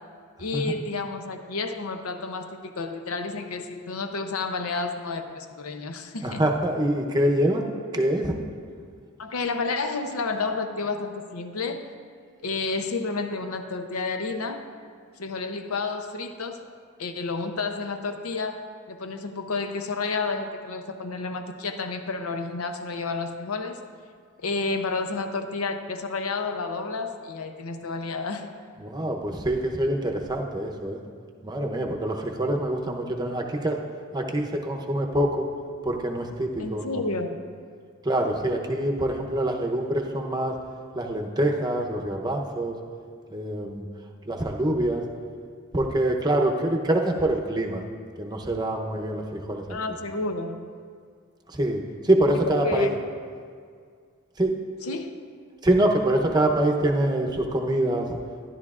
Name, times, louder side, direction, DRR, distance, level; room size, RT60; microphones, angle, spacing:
voice 1, 0.4-6.4 9.2-11.9 12.4-14.6 15.2-16.7 17.0-23.8 24.4-28.5 36.6-37.4 49.7-50.7 52.5-52.9 54.8-55.1, left 3 dB, 85° left, 7 dB, 0.7 m, -30 dB
voice 2, 6.2-7.7 7.9-8.4 28.8-31.0 31.4-33.8 34.1-35.5 35.8-37.0 38.0-40.5 40.9-42.8 43.3-43.8 44.3-45.0 45.7-47.8 48.2-49.8 51.5-52.9 54.4-54.5 55.6-58.2, right 1 dB, 20° right, 1 dB, 0.7 m, -25 dB
13.0 x 11.0 x 2.4 m, 2.1 s
head